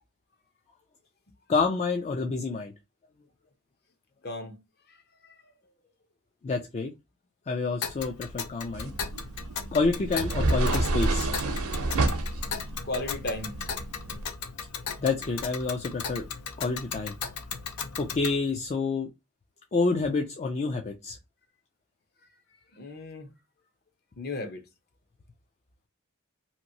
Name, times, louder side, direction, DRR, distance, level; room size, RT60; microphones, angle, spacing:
voice 1, 1.5-2.7 6.4-6.9 7.5-8.9 9.7-11.3 15.0-16.3 16.6-17.1 18.0-19.1 19.7-21.2, left 3 dB, 30° left, 0.4 m, -28 dB
voice 2, 4.2-4.6 4.9-5.0 5.2-5.4 12.8-13.6 14.0-14.2 22.7-23.3 24.2-24.7, left 2 dB, 45° left, 0.8 m, -35 dB
Tick, 7.8-18.4, left 6 dB, 85° left, 0.6 m, -37 dB
sound 1, 8.7-14.2, right 2 dB, 75° right, 0.7 m, -29 dB
2.9 x 2.6 x 2.7 m
head